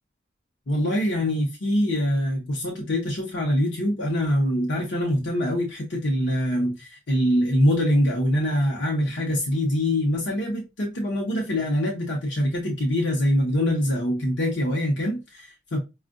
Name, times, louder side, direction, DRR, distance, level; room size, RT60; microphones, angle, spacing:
voice 1, 0.7-15.8, equal, 75° left, 0.9 m, -24 dB
5.2 x 2.4 x 2.5 m
head